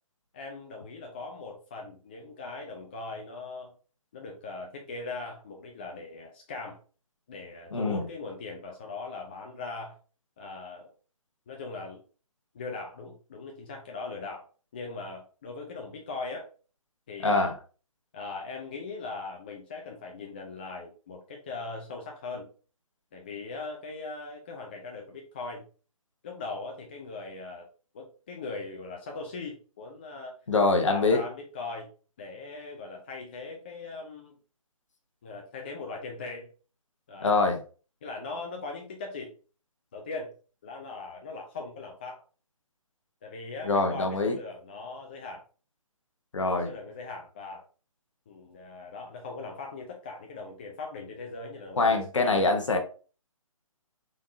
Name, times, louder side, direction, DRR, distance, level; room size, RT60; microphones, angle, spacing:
voice 1, 0.3-3.7 4.1-6.8 7.3-10.0 10.4-10.9 11.5-12.0 12.5-14.5 14.7-16.5 17.1-17.5 18.1-22.5 23.1-25.7 26.2-27.7 27.9-30.4 30.9-31.9 32.2-34.3 35.2-36.5 37.1-37.4 38.0-39.3 39.9-40.3 40.6-42.2 43.2-45.4 46.6-47.6 48.3-52.4, left 3 dB, 20° left, 0.3 m, -40 dB
voice 2, 7.7-8.0 17.2-17.6 30.5-31.2 37.2-37.6 43.6-44.4 46.3-46.7 51.8-52.8, left 3 dB, 60° left, 0.9 m, -24 dB
3.8 x 3.4 x 2.6 m
figure-of-eight pair, 135°, 18 cm